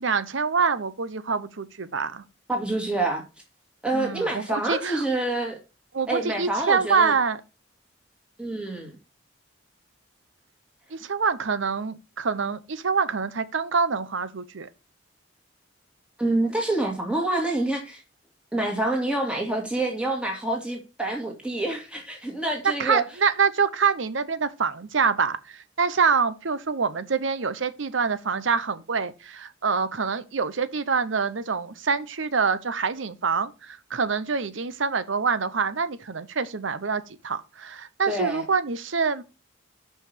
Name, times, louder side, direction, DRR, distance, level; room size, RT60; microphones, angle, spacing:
voice 1, 0.0-2.2 3.9-5.0 5.9-7.4 10.9-14.7 22.6-39.2, right 5 dB, 70° right, 0.8 m, -26 dB
voice 2, 2.5-3.2 3.8-5.6 6.1-7.1 8.4-8.9 16.2-18.0 18.5-23.0 38.1-38.4, right 2 dB, 5° right, 2.2 m, -27 dB
5.8 x 5.6 x 6.6 m
head